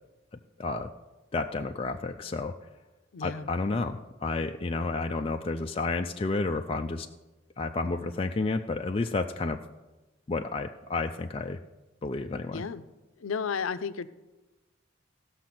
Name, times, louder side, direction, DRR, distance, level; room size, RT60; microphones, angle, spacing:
voice 1, 0.6-0.9 1.3-2.5 3.2-7.1 7.6-9.6 10.3-11.6 12.0-12.6, left 3 dB, 30° left, 5 dB, 0.3 m, -31 dB
voice 2, 3.1-3.5 12.5-12.8 13.2-14.1, left 6 dB, 90° left, 13 dB, 0.5 m, -33 dB
15.5 x 6.3 x 5.9 m, 1.1 s
head